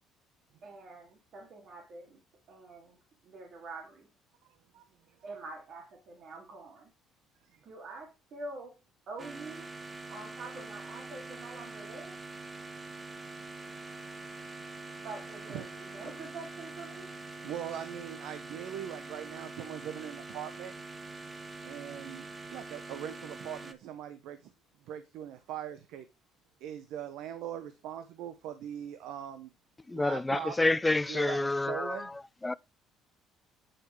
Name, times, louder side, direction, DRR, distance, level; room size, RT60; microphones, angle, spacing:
voice 1, 0.6-2.2 2.5-3.0 3.2-4.1 5.2-6.9 7.6-8.7 9.1-9.7 10.1-12.1 15.0-17.1, right 3 dB, 55° right, 2.9 m, -45 dB
voice 2, 4.4-5.3 7.4-7.6 13.9-14.1 15.5-15.7 17.4-20.8 21.6-24.5 24.8-26.1 26.6-29.5 29.9-30.6 31.1-32.1, right 10 dB, 75° right, 0.8 m, -41 dB
sound 1, 9.2-23.7, right 3 dB, 25° right, 1.2 m, -44 dB
voice 3, 29.9-32.0 32.4-32.5, left 2 dB, 15° left, 0.4 m, -28 dB
9.0 x 4.7 x 4.8 m
supercardioid pair, 80°, 0 cm